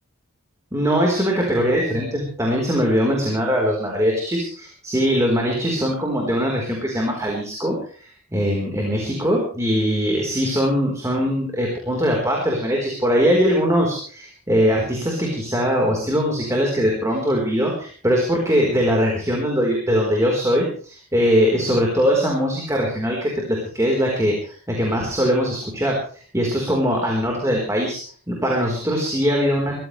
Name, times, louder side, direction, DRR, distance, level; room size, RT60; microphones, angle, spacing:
voice 1, 0.7-26.0 26.3-28.0 28.3-29.8, equal, 15° right, -1 dB, 4.1 m, -21 dB
24.0 x 15.0 x 3.3 m, 0.42 s
head